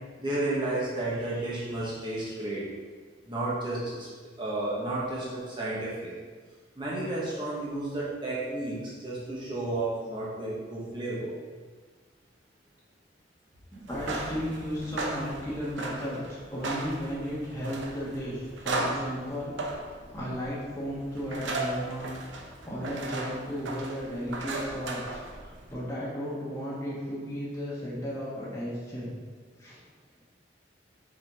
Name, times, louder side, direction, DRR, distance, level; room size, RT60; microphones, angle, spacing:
voice 1, 0.2-2.6 3.3-4.1 4.4-6.1 6.8-11.3, right 2 dB, 25° right, -7 dB, 1.3 m, -32 dB
voice 2, 13.7-16.2 16.5-19.5 19.8-22.1 22.7-29.1 29.6-29.8, equal, 15° left, -8 dB, 1.3 m, -34 dB
sound 1, 13.8-25.7, right 2 dB, 90° right, 0.8 m, -36 dB
5.8 x 4.8 x 3.6 m, 1.5 s
head